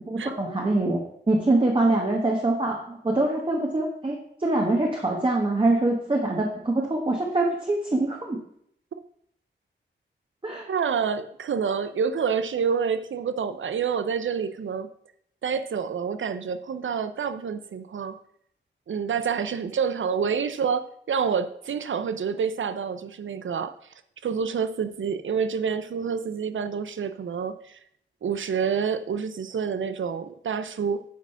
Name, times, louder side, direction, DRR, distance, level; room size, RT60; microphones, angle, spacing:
voice 1, 0.1-1.0 1.3-8.4 10.4-10.7, right 2 dB, 25° right, 0 dB, 1.3 m, -24 dB
voice 2, 10.7-14.9 15.4-18.2 18.9-23.7 24.2-27.8 28.2-31.0, right 6 dB, 85° right, 11 dB, 0.7 m, -28 dB
9.2 x 5.0 x 5.7 m, 0.68 s
wide cardioid pair, 105°, 20 cm